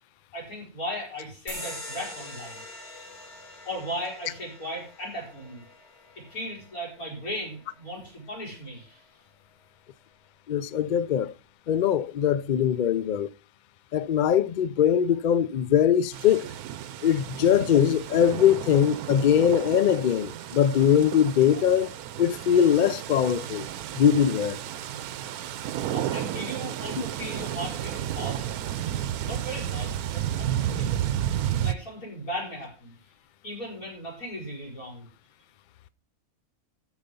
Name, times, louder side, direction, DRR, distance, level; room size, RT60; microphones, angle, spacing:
voice 1, 0.3-2.6 3.6-5.6 6.2-9.0 25.9-28.5 29.2-31.1 31.6-33.0 33.4-35.1, equal, 70° left, 5.7 m, -37 dB
sound 1, 1.5-8.5, left 1 dB, 45° left, 3.9 m, -44 dB
voice 2, 10.5-11.3 11.7-13.3 13.9-16.5 17.0-21.9 22.2-23.7 24.0-24.6, left 9 dB, 90° left, 0.4 m, -22 dB
sound 2, 16.1-31.7, right 11 dB, 80° right, 1.1 m, -32 dB
13.5 x 5.1 x 5.2 m
omnidirectional pair, 1.6 m